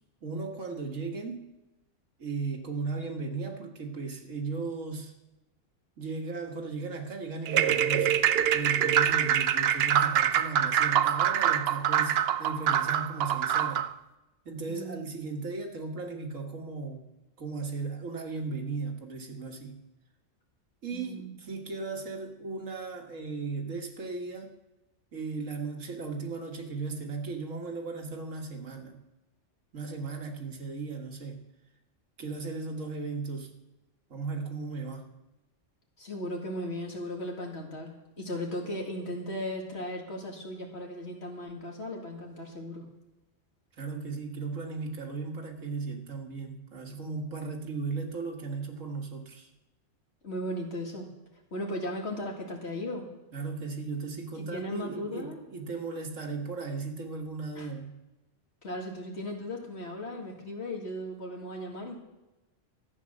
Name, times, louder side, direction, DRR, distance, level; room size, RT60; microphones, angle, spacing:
voice 1, 0.2-1.5 2.2-5.1 6.0-13.9 14.5-17.1 17.4-19.8 20.8-24.5 25.1-29.0 29.7-31.4 32.2-33.5 34.1-35.1 43.8-49.5 53.3-58.0, right 4 dB, 85° right, 2 dB, 2.0 m, -36 dB
sound 1, 7.5-13.9, right 9 dB, 60° right, 0.7 m, -25 dB
voice 2, 14.7-15.0 20.9-21.3 36.0-42.9 50.2-51.1 51.5-53.1 54.4-55.4 57.6-57.7 58.6-62.0, left 1 dB, 55° left, 0 dB, 2.5 m, -37 dB
13.5 x 8.5 x 6.6 m, 1.0 s
omnidirectional pair, 1.3 m